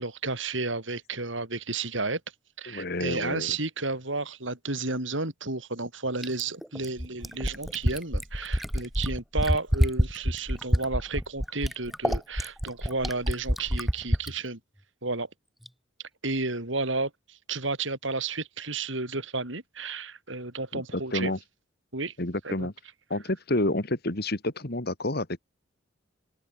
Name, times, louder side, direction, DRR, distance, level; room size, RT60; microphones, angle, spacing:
voice 1, 0.0-2.2 2.6-14.6 15.0-15.3 16.2-21.3 21.9-22.1 22.4-22.7, right 3 dB, 70° right, 5.5 m, -32 dB
voice 2, 2.7-3.6 20.7-21.4 22.2-22.7 23.1-25.4, left 1 dB, 50° left, 2.5 m, -29 dB
Fill (with liquid), 6.2-14.3 15.7-15.8, equal, ahead, 1.0 m, -27 dB
open air
head